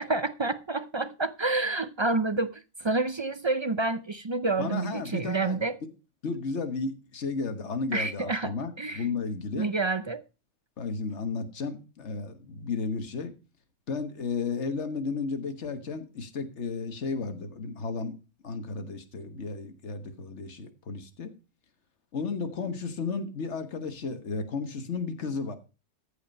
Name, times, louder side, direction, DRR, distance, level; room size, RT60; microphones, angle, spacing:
voice 1, 0.0-5.8 7.9-9.1 9.5-10.2, right 3 dB, 40° right, 0.4 m, -29 dB
voice 2, 4.6-5.6 6.2-9.7 10.8-13.3 13.9-18.1 18.4-21.3 22.1-25.6, left 4 dB, 65° left, 1.6 m, -33 dB
14.5 x 5.1 x 5.4 m
omnidirectional pair, 1.3 m